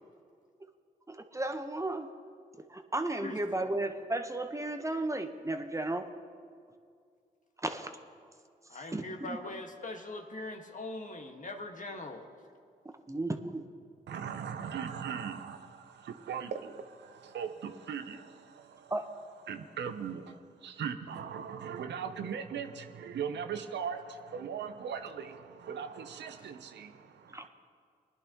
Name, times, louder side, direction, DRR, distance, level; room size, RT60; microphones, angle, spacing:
voice 1, 1.1-2.1 2.7-6.1 7.6-7.9 8.9-9.4 13.1-13.6 18.9-19.1 27.3-27.4, right 2 dB, 15° right, 1.0 m, -34 dB
voice 2, 3.2-3.8 8.7-12.3 26.4-26.5, left 2 dB, 45° left, 1.6 m, -42 dB
voice 3, 14.1-18.9 19.5-27.5, right 7 dB, 75° right, 0.7 m, -39 dB
20.0 x 11.0 x 3.0 m
supercardioid pair, 40°, 18 cm